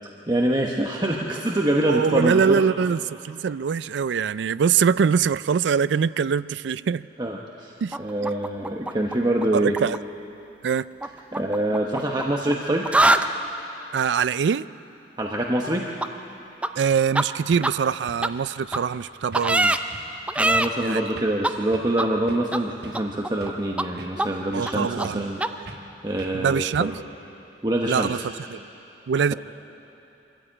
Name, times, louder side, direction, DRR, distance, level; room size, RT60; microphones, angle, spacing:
voice 1, 0.3-2.6 7.2-9.8 11.3-12.9 15.2-15.8 19.6-19.7 20.1-25.4 26.0-27.0 27.6-28.1, right 1 dB, 25° right, -1 dB, 1.0 m, -25 dB
voice 2, 1.9-7.1 7.8-8.0 9.5-10.0 10.6-10.8 13.9-14.6 16.8-19.7 20.8-21.2 24.5-25.2 26.3-26.9 27.9-28.2 28.5-28.6 29.1-29.3, right 6 dB, 85° right, 17 dB, 0.4 m, -23 dB
sound 1, 7.9-9.5 9.7-10.0 11.0-12.5 12.8-13.3 16.0-16.1 16.6-16.7 17.2-17.3 17.6-17.7 18.2-18.3 18.7-18.8 19.3-19.8 20.3-20.7 21.4-21.5 22.0-22.1 22.5-22.6 22.9-23.5 23.8-23.9 24.2-24.3 24.6-24.7 25.0-25.1 25.4-25.5, right 1 dB, 5° right, 0.5 m, -22 dB
sound 2, 17.5-17.7 18.1-18.3 18.7-19.0 19.3-19.6 19.9-20.1 20.5-20.8 21.2-21.4 21.7-22.0 22.3-22.5 22.8-23.7 24.0-24.8 25.0-25.3 25.7-25.9 26.2-26.4 26.7-27.1, right 2 dB, 65° right, 1.5 m, -43 dB
23.5 x 14.0 x 8.8 m, 3.0 s
head